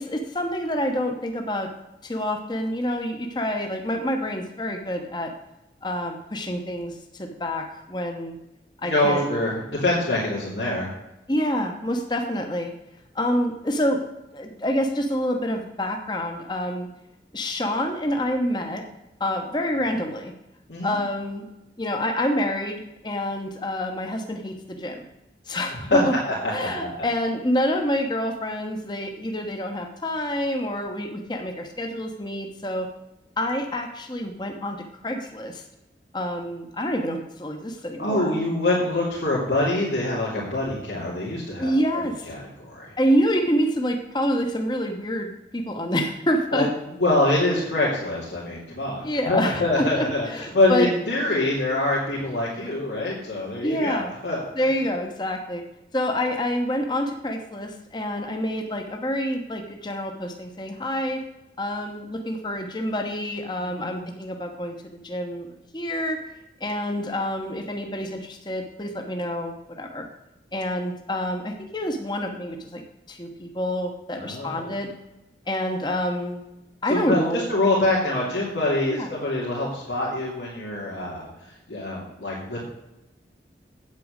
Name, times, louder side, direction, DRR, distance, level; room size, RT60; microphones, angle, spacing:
voice 1, 0.0-1.7 2.0-5.3 5.8-8.4 8.8-9.2 11.3-12.7 13.1-14.0 14.3-16.9 17.3-18.8 19.2-20.3 20.8-21.5 21.8-25.1 25.5-26.2 26.5-32.9 33.4-35.6 36.1-38.3 41.6-42.3 43.0-46.7 49.0-50.9 53.6-54.1 54.6-55.6 55.9-61.2 61.6-65.5 65.7-66.2 66.6-70.1 70.5-72.8 73.1-74.9 75.5-76.4 76.8-77.4 78.9-79.1, equal, 25° left, 3 dB, 1.0 m, -27 dB
voice 2, 8.8-10.9 20.7-21.0 25.9-26.0 26.3-27.1 38.0-42.0 42.3-42.9 46.5-46.7 47.0-54.5 63.6-64.1 74.1-74.7 76.9-81.3 81.7-82.6, left 2 dB, 90° left, -6 dB, 2.7 m, -25 dB
8.5 x 8.5 x 6.4 m, 0.91 s
head